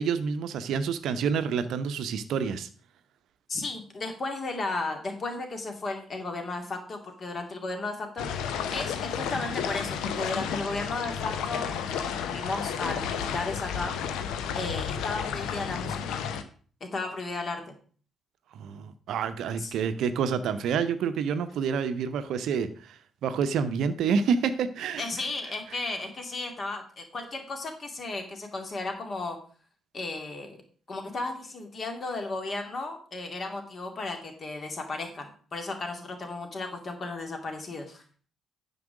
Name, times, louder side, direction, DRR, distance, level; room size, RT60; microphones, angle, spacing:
voice 1, 0.0-2.7 18.5-25.1, right 6 dB, 60° right, 11 dB, 0.7 m, -28 dB
voice 2, 3.5-8.3 8.7-13.9 14.5-16.2 16.8-17.7 19.5-19.7 25.0-29.4 29.9-30.6 30.9-38.0, left 3 dB, 40° left, 4 dB, 2.3 m, -34 dB
sound 1, 8.2-16.4, left 7 dB, 65° left, 0.8 m, -32 dB
9.4 x 5.5 x 6.2 m, 0.43 s
figure-of-eight pair, 40°, 0 cm